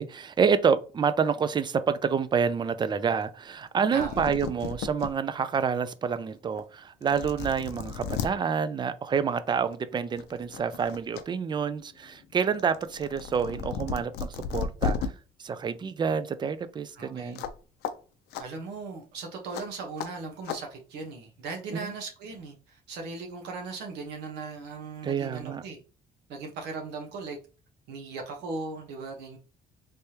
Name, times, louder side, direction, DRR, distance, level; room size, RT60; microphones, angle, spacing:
voice 1, 0.0-15.0 15.4-17.4 21.7-21.9 25.0-25.6, right 6 dB, 25° right, 0.4 m, -28 dB
sound 1, 3.7-3.8 4.0-5.1 5.6-5.7 6.6-6.7 7.0-8.3 9.6-9.8 10.2-11.2 11.6-15.1 17.4-17.6 17.8-17.9 18.3-18.4 19.5-19.6 20.0-20.1 20.5-20.6, left 6 dB, 75° left, 0.5 m, -34 dB
voice 2, 3.9-4.3 17.0-17.5 18.4-25.8 26.3-27.4 27.9-29.4, right 4 dB, 80° right, 1.0 m, -38 dB
3.3 x 3.3 x 2.8 m
cardioid pair, 110°, 17 cm